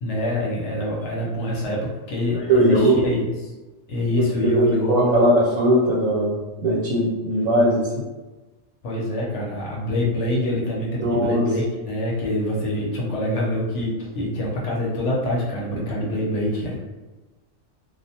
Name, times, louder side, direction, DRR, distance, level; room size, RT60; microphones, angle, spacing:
voice 1, 0.0-3.5 3.9-5.3 8.8-16.7, left 1 dB, 65° left, -4 dB, 0.9 m, -25 dB
voice 2, 2.5-3.0 4.1-7.9 11.0-11.5, right 1 dB, 85° right, -5 dB, 1.1 m, -19 dB
2.4 x 2.1 x 2.7 m, 1.2 s
omnidirectional pair, 1.4 m